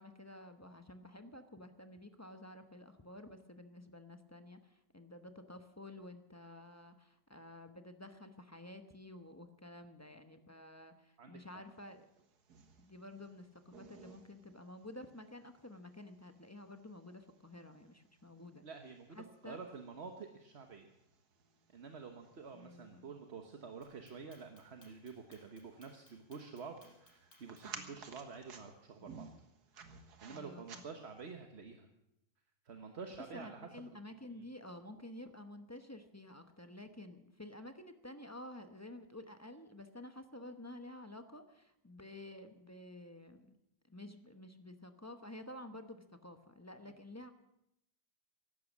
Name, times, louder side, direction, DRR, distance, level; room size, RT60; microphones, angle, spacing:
voice 1, 0.0-12.1 12.8-18.7 19.1-19.6 22.5-23.1 27.7-28.0 29.0-29.2 30.3-30.8 33.3-43.5 43.9-47.3, left 1 dB, 15° left, 8 dB, 0.6 m, -51 dB
voice 2, 11.2-11.6 18.6-20.9 21.7-29.3 30.2-31.9 32.6-33.7 34.3-34.5 46.8-46.9, right 5 dB, 40° right, 5 dB, 1.3 m, -49 dB
sound 1, 11.9-31.3, right 6 dB, 65° right, 1.9 m, -58 dB
Clock, 23.8-27.8, left 2 dB, 55° left, 5.7 m, -65 dB
15.5 x 11.5 x 7.3 m, 0.85 s
omnidirectional pair, 1.8 m